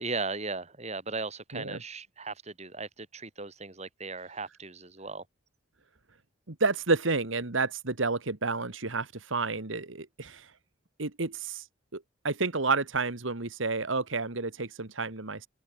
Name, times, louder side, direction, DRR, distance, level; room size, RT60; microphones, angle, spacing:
voice 1, 0.0-5.2, right 3 dB, 35° right, 4.8 m, -37 dB
voice 2, 6.5-10.5 11.0-11.7 11.9-15.5, right 3 dB, 75° right, 1.9 m, -30 dB
open air
head